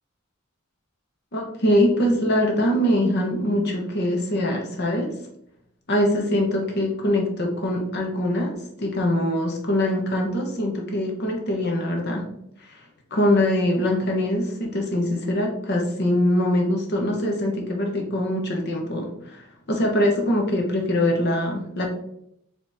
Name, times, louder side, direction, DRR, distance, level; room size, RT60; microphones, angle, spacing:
voice 1, 1.3-5.1 5.9-8.5 8.8-12.3 13.1-21.9, left 1 dB, 50° left, 1 dB, 0.9 m, -23 dB
5.0 x 3.1 x 3.4 m, 0.74 s
head